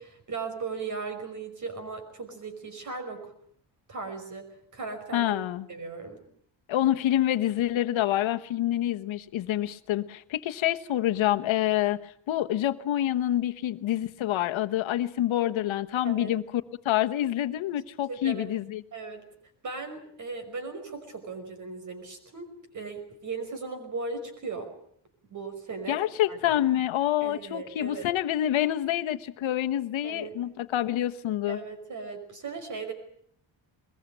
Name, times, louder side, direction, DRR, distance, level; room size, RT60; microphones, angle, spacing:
voice 1, 0.0-3.3 3.9-5.3 5.7-6.2 16.0-16.3 18.1-18.5 18.9-19.3 19.6-24.7 25.3-26.6 27.2-28.0 30.0-30.4 31.5-32.9, right 4 dB, 40° right, 8 dB, 5.5 m, -37 dB
voice 2, 5.1-5.7 6.7-16.4 16.8-18.8 25.9-31.6, left 12 dB, 75° left, 9 dB, 1.2 m, -27 dB
22.0 x 21.5 x 9.0 m, 0.65 s
wide cardioid pair, 175°, 47 cm